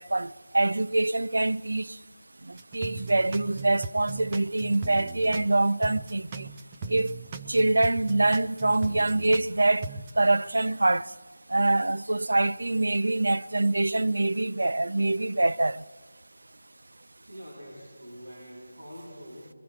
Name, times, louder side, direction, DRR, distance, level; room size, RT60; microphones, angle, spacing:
voice 1, 0.0-2.0 2.5-6.5 6.9-7.1 7.5-9.9 10.2-11.1 11.5-15.8, right 2 dB, 85° right, 0.5 m, -25 dB
sound 1, 2.6-5.5 5.8-9.5 9.8-10.1, right 4 dB, 15° right, 0.5 m, -38 dB
voice 2, 17.3-19.5, equal, 70° right, 7.1 m, -44 dB
24.0 x 22.5 x 4.9 m
figure-of-eight pair, 180°, 0 cm